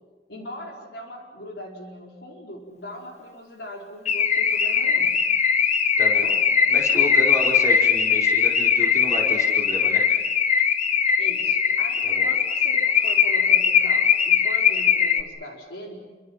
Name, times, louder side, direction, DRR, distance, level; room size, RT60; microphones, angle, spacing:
voice 1, 0.3-5.2 6.1-6.4 11.2-16.1, left 1 dB, 75° left, 0 dB, 4.9 m, -40 dB
Car / Alarm, 4.1-15.2, left 7 dB, 40° left, 1.2 m, -20 dB
voice 2, 6.7-10.0 12.0-12.3, left 1 dB, 20° left, -2 dB, 4.8 m, -31 dB
29.0 x 25.0 x 5.9 m, 1.3 s
head